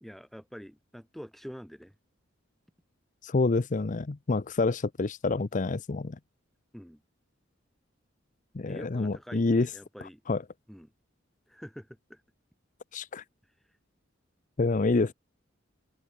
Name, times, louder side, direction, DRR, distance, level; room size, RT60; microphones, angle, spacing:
voice 1, 0.0-1.9 6.7-7.0 8.7-10.2 10.7-10.9 11.5-12.2, equal, ahead, 1.9 m, -46 dB
voice 2, 3.2-6.2 8.5-9.7 10.3-10.4 12.9-13.2 14.6-15.1, left 3 dB, 40° left, 0.6 m, -27 dB
head